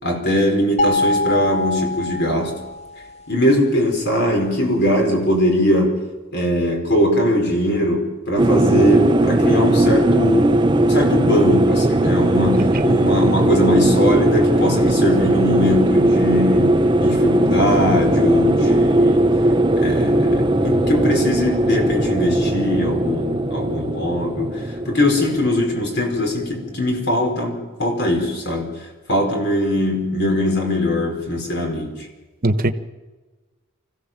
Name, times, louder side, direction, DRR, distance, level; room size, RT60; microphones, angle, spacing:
voice 1, 0.0-2.6 3.3-6.0 6.3-10.6 10.8-19.3 19.8-24.6 24.8-28.7 29.1-32.0, left 1 dB, 55° left, 5.1 m, -21 dB
sound 1, 0.8-3.0, left 2 dB, 30° left, 1.7 m, -22 dB
sound 2, 8.4-26.8, right 1 dB, 25° right, 0.7 m, -18 dB
voice 2, 12.6-12.9 32.4-32.7, right 1 dB, 45° right, 1.3 m, -20 dB
25.0 x 16.0 x 7.6 m
head